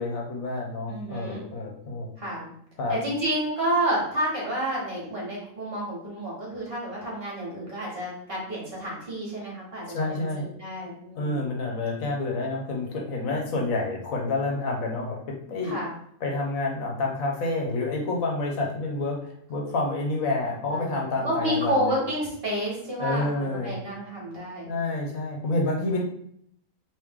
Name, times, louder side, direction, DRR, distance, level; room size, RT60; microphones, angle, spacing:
voice 1, 0.0-2.1 2.8-3.0 9.9-10.5 11.1-15.8 16.2-22.0 23.0-23.8 24.7-26.0, left 2 dB, 75° left, 0 dB, 1.2 m, -28 dB
voice 2, 0.9-1.4 2.2-2.5 2.9-11.5 15.6-15.9 20.7-24.7, right 1 dB, 45° right, -4 dB, 1.4 m, -30 dB
3.2 x 3.0 x 3.6 m, 0.68 s
omnidirectional pair, 1.5 m